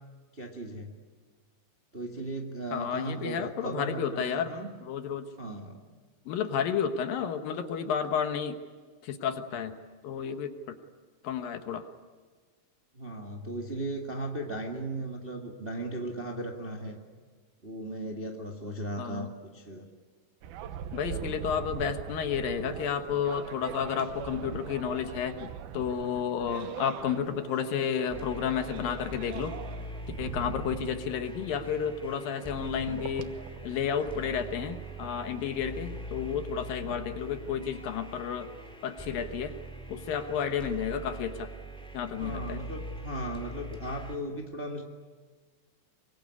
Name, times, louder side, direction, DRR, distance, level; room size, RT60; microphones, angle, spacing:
voice 1, 0.3-0.9 1.9-4.7 5.4-5.8 12.9-17.0 17.6-19.9 42.1-44.8, right 1 dB, 25° right, 1 dB, 1.2 m, -37 dB
voice 2, 2.7-4.6 4.9-5.3 6.3-8.6 9.0-9.8 10.0-10.8 11.2-11.9 19.0-19.3 20.9-29.5 30.2-33.3 33.6-38.5 38.8-39.5 39.9-41.5 41.9-42.6, left 7 dB, 70° left, 8 dB, 2.8 m, -31 dB
sound 1, 20.4-37.8, right 9 dB, 75° right, 2.8 m, -43 dB
Rock Intro, 28.1-44.2, right 1 dB, ahead, 2.3 m, -42 dB
24.0 x 23.5 x 9.8 m, 1.4 s
omnidirectional pair, 4.5 m